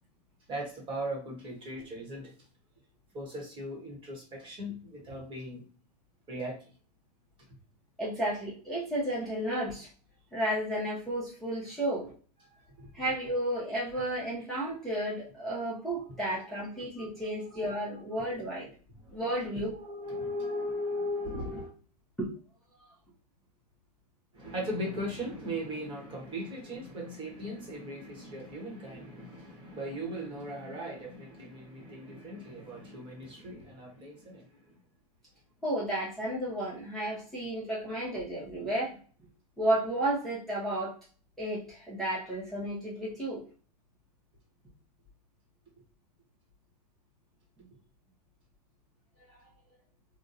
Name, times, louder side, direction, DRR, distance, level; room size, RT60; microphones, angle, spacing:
voice 1, 0.5-2.3 3.1-5.7 6.3-6.6 12.5-12.9 14.7-14.8 15.6-15.7 16.7-17.9 19.0-19.2 19.7-21.7 24.3-34.6, equal, 25° right, -1 dB, 1.3 m, -38 dB
voice 2, 8.0-9.9 10.3-12.1 12.9-18.7 19.1-19.7 22.2-22.3 35.6-38.9 39.6-40.9 41.4-43.4 49.3-49.4, right 1 dB, ahead, -9 dB, 1.0 m, -32 dB
3.5 x 2.3 x 2.7 m, 0.40 s
hypercardioid pair, 130°, 21 cm